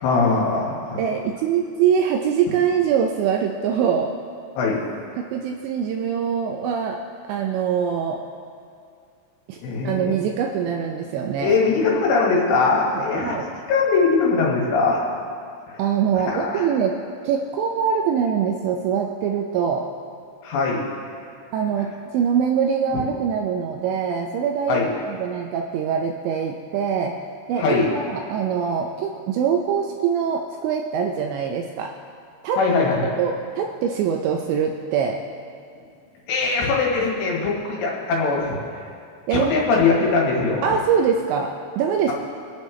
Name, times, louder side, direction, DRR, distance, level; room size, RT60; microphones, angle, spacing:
voice 1, 0.0-1.0 4.6-4.8 9.6-10.1 11.4-13.3 13.7-15.0 16.2-16.7 20.4-20.9 22.9-23.0 24.7-24.9 27.6-27.9 32.6-33.1 36.3-38.6 39.3-40.7, left 4 dB, 65° left, -3 dB, 3.7 m, -21 dB
voice 2, 1.0-4.1 5.2-7.0 7.3-8.2 9.5-9.6 9.8-11.6 12.9-13.5 15.8-16.9 17.2-19.9 21.5-24.8 25.2-27.2 27.5-31.9 32.4-32.6 33.0-35.2 39.3-39.6 40.6-42.1, right 7 dB, 80° right, 2 dB, 2.7 m, -23 dB
26.0 x 8.6 x 3.2 m, 2.3 s
omnidirectional pair, 5.7 m